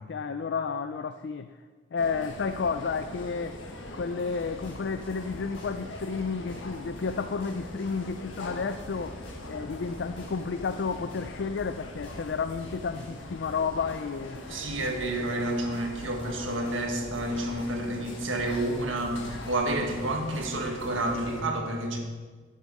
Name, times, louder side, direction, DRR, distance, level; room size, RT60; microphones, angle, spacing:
voice 1, 0.1-1.5 1.9-3.6 3.9-9.2 9.5-14.4, left 5 dB, 60° left, 9 dB, 0.4 m, -31 dB
sound 1, 2.0-21.4, left 1 dB, 80° left, 1.3 m, -42 dB
sound 2, 4.2-21.3, equal, 30° left, 3.4 m, -50 dB
voice 2, 14.5-22.0, right 1 dB, 85° right, 2 dB, 1.6 m, -30 dB
9.7 x 9.2 x 4.8 m, 1.5 s
head